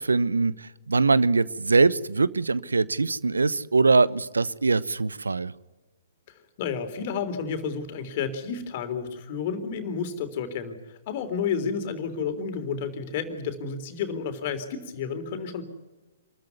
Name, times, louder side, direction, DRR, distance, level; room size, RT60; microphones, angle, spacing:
voice 1, 0.0-5.5, right 3 dB, 80° right, 19 dB, 0.9 m, -22 dB
voice 2, 6.6-10.8 11.1-15.6, left 6 dB, 45° left, 9 dB, 3.7 m, -31 dB
27.0 x 14.0 x 9.6 m, 1.1 s
figure-of-eight pair, 125°, 0 cm